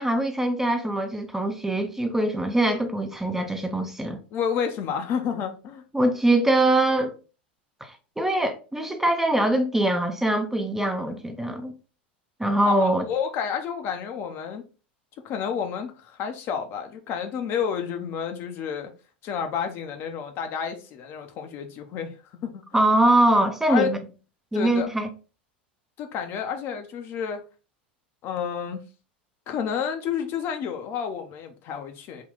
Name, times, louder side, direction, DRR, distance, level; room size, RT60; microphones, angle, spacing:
voice 1, 0.0-4.2 5.9-7.1 7.8-11.7 12.4-13.1 22.7-24.0 24.5-25.1, right 1 dB, 5° right, 0.5 m, -23 dB
voice 2, 4.3-5.8 12.7-14.6 15.2-18.9 19.2-22.1 22.4-22.6 23.7-23.9 24.5-24.9 26.0-27.4 28.2-28.8 29.5-32.2, left 7 dB, 45° left, 0.6 m, -30 dB
3.7 x 2.3 x 3.7 m
figure-of-eight pair, 85°, 6 cm